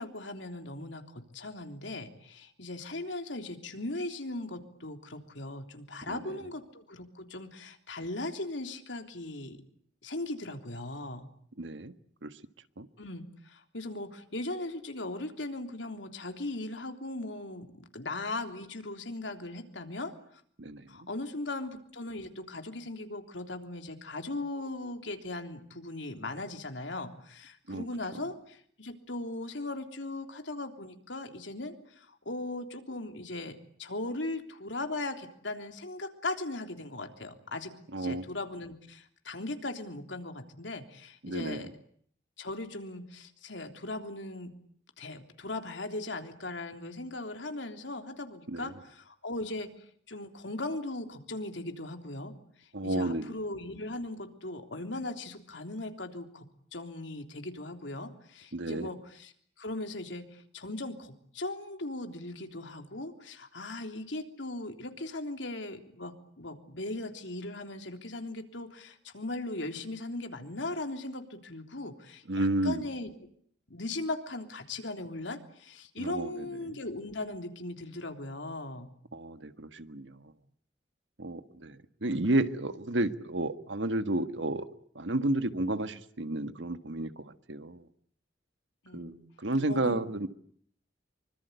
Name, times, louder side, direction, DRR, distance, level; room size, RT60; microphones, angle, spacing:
voice 1, 0.0-9.6 10.0-11.3 13.0-17.7 17.9-20.1 20.9-41.7 42.4-44.5 45.0-49.7 50.1-52.3 52.6-56.5 56.7-59.3 59.6-73.1 73.7-78.9 82.0-82.3 88.8-89.2 89.7-90.0, left 2 dB, 85° left, 6 dB, 3.4 m, -38 dB
voice 2, 11.6-11.9 12.2-12.3 12.8-12.9 20.6-20.9 27.7-27.9 37.9-38.2 41.2-41.7 48.5-48.7 52.7-53.3 58.5-58.9 72.3-72.8 76.0-76.8 79.1-80.2 81.2-84.7 84.9-87.8 88.9-90.3, right 1 dB, 85° right, 10 dB, 1.6 m, -32 dB
26.0 x 24.5 x 8.2 m, 0.62 s
head